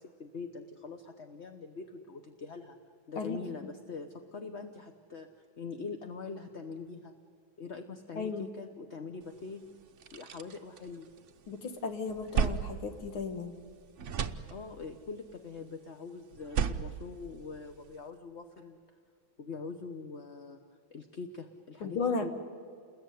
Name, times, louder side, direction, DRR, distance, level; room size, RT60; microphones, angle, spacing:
voice 1, 0.0-2.8 3.1-5.3 5.6-7.1 7.6-9.6 10.1-11.1 14.5-18.8 19.4-20.6 20.9-22.3, left 4 dB, 40° left, 6 dB, 1.1 m, -43 dB
voice 2, 8.2-8.5 11.5-13.5 21.8-22.3, left 4 dB, 80° left, 7 dB, 2.6 m, -34 dB
sound 1, 9.4-9.5 9.8-11.5 11.9-13.7 14.0-15.0 16.3-18.0, right 7 dB, 55° right, 0.8 m, -35 dB
29.5 x 21.0 x 9.5 m, 2.2 s
omnidirectional pair, 2.3 m